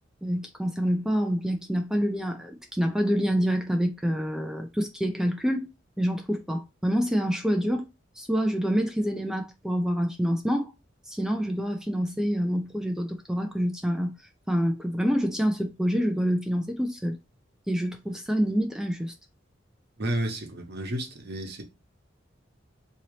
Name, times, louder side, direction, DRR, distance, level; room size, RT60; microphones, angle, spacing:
voice 1, 0.2-5.7 6.0-7.9 8.2-10.7 11.1-14.2 14.5-17.2 17.7-19.1, equal, 5° right, 0.3 m, -27 dB
voice 2, 20.0-21.6, right 1 dB, 55° right, 1.0 m, -31 dB
3.8 x 2.8 x 3.1 m
head